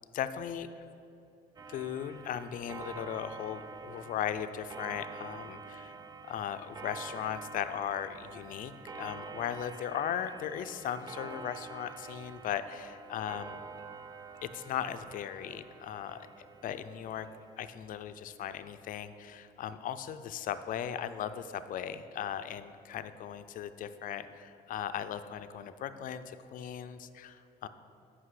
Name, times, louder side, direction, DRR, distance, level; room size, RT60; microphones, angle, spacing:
voice 1, 0.1-0.7 1.7-6.0 6.3-8.7 9.0-13.7 14.4-17.3 17.6-27.7, left 9 dB, 55° left, 11 dB, 0.4 m, -37 dB
Clock, 1.6-17.7, right 4 dB, 25° right, 0.4 m, -47 dB
8.0 x 5.6 x 4.8 m, 2.7 s
cardioid pair, 110°, 17 cm